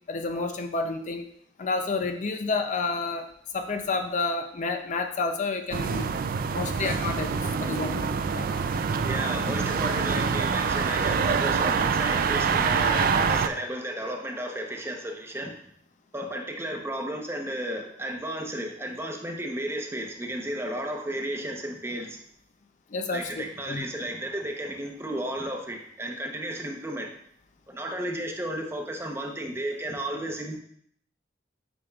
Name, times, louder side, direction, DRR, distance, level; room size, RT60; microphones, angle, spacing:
voice 1, 0.1-1.3 1.6-3.3 3.5-6.1 6.5-8.5 9.5-9.6 22.9-23.8, left 3 dB, 45° left, 6 dB, 0.5 m, -30 dB
sound 1, 5.7-13.5, right 5 dB, 55° right, 0.3 m, -25 dB
voice 2, 9.0-15.5 16.1-22.2 23.1-27.1 27.7-30.6, right 1 dB, 15° right, 2 dB, 0.8 m, -33 dB
8.6 x 5.1 x 2.3 m, 0.66 s
head